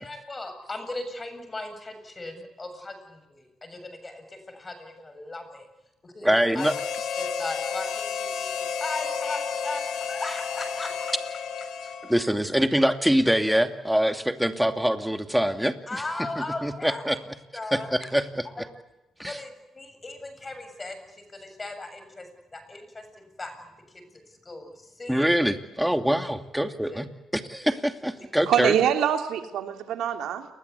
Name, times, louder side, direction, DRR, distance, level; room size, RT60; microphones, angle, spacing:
voice 1, 0.0-5.7 6.0-6.3 6.5-6.7 7.2-11.2 15.9-17.2 17.5-18.0 18.4-18.6 19.2-23.5 23.9-25.3 26.9-27.0 28.1-28.3, left 2 dB, 25° left, 8 dB, 7.4 m, -38 dB
voice 2, 6.2-6.7 12.1-15.8 16.6-17.2 17.7-18.5 19.2-19.4 25.1-27.1 27.3-28.7, equal, 5° right, 7 dB, 2.6 m, -24 dB
Harmonica, 6.6-12.3, left 6 dB, 75° left, 3.2 m, -32 dB
voice 3, 28.5-30.5, right 9 dB, 80° right, 6 dB, 3.2 m, -24 dB
29.5 x 21.5 x 8.4 m, 0.98 s
cardioid pair, 90°, 0 cm